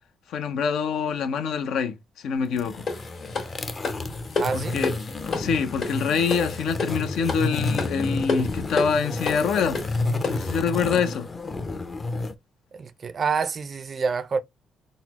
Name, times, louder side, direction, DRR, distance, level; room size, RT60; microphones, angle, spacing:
voice 1, 0.3-2.8 4.5-5.0 5.3-9.8 10.3-11.3, left 6 dB, 80° left, 0.5 m, -25 dB
sound 1, 2.5-12.3, left 3 dB, 30° left, 0.5 m, -31 dB
sound 2, 2.9-10.6, left 3 dB, 60° left, 1.6 m, -31 dB
voice 2, 4.3-4.8 12.7-14.4, right 5 dB, 45° right, 0.4 m, -27 dB
3.9 x 2.0 x 2.8 m
cardioid pair, 90°, 0 cm